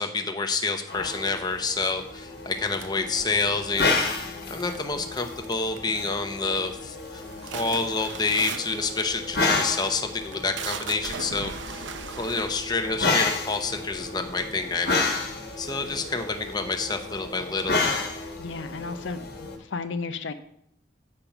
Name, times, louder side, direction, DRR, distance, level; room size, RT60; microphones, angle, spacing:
voice 1, 0.0-15.0 15.6-17.8, left 4 dB, 20° left, 5 dB, 0.7 m, -28 dB
sound 1, 0.9-19.6, left 3 dB, 55° left, 1.3 m, -31 dB
sound 2, 2.7-3.8 4.6-5.2 5.4-5.9 6.3-6.7 7.0-14.1 14.8-14.9 15.1-16.7, right 6 dB, 80° right, 0.7 m, -39 dB
voice 2, 18.4-20.3, left 4 dB, 85° left, 9 dB, 0.6 m, -34 dB
8.6 x 5.2 x 5.9 m, 0.72 s
head